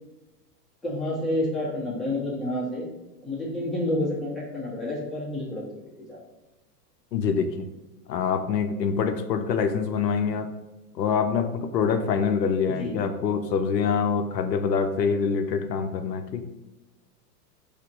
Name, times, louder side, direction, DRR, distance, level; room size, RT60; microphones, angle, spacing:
voice 1, 0.8-2.9 3.2-5.7 6.0-6.2 12.8-12.9, left 1 dB, ahead, -8 dB, 1.4 m, -29 dB
voice 2, 7.1-7.7 8.1-10.5 10.9-16.4, left 6 dB, 90° left, 7 dB, 0.6 m, -25 dB
4.1 x 2.9 x 4.1 m, 1.1 s
hypercardioid pair, 125°, 48 cm